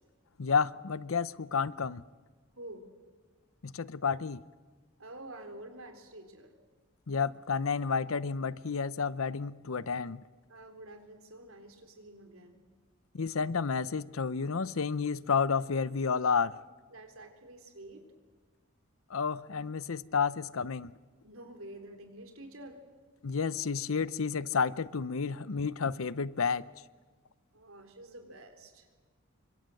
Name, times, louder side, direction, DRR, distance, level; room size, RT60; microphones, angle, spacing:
voice 1, 0.4-2.0 3.6-4.4 7.1-10.2 13.1-16.6 19.1-20.9 23.2-26.7, left 5 dB, 75° left, 0.7 m, -31 dB
voice 2, 5.0-6.5 10.5-12.6 16.9-18.0 21.2-22.8 27.5-28.9, right 1 dB, 75° right, 3.9 m, -48 dB
26.5 x 25.0 x 7.7 m
head